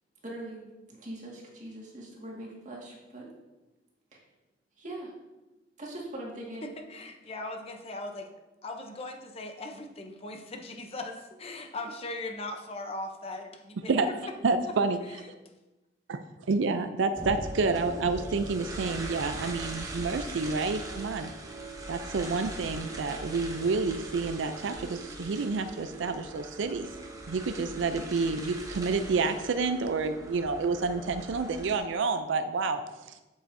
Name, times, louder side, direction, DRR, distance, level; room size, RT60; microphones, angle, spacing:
voice 1, 0.2-3.3 4.1-4.2 4.8-5.1 5.8-6.7, right 1 dB, 40° right, -3 dB, 1.8 m, -41 dB
voice 2, 6.6-8.3 8.6-14.3 15.1-15.2, left 2 dB, 35° left, 4 dB, 0.6 m, -39 dB
voice 3, 14.4-15.0 16.1-16.2 16.5-21.3 21.9-26.9 27.3-32.8, right 4 dB, 85° right, 9 dB, 0.4 m, -29 dB
sound 1, 17.1-31.8, right 2 dB, 20° right, 0.9 m, -40 dB
8.0 x 7.7 x 2.6 m, 1.1 s
head